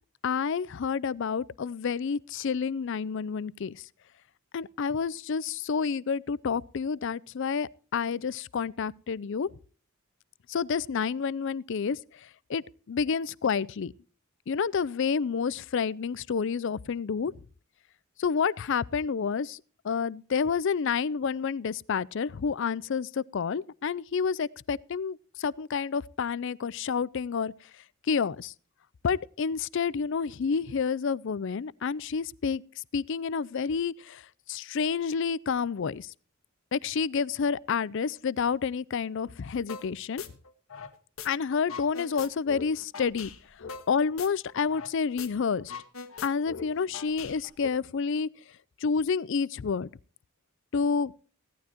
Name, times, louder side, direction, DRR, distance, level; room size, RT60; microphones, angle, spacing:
voice 1, 0.2-3.9 4.5-9.5 10.5-13.9 14.5-17.4 18.2-27.5 28.1-28.5 29.0-32.6 32.9-36.1 36.7-40.2 41.2-43.3 43.6-45.7 46.2-48.3 48.8-49.9 50.7-51.1, left 6 dB, 60° left, 0.4 m, -29 dB
sound 1, 39.7-39.9 40.2-41.3 41.6-44.9 45.2-45.3 45.6-47.7, left 6 dB, 75° left, 1.4 m, -41 dB
16.5 x 12.0 x 2.9 m
head